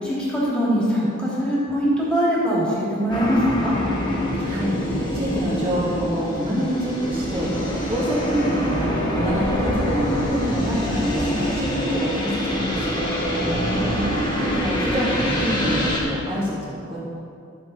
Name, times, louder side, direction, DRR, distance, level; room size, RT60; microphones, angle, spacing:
voice 1, 0.0-3.7 13.4-14.2, equal, 5° left, -8 dB, 3.0 m, -22 dB
sound 1, 3.1-16.0, equal, 20° left, 1.7 m, -25 dB
voice 2, 5.1-7.5 7.9-8.9 9.1-13.0 14.4-17.0, equal, 25° right, -7 dB, 2.9 m, -26 dB
13.5 x 7.2 x 4.4 m, 2.5 s
head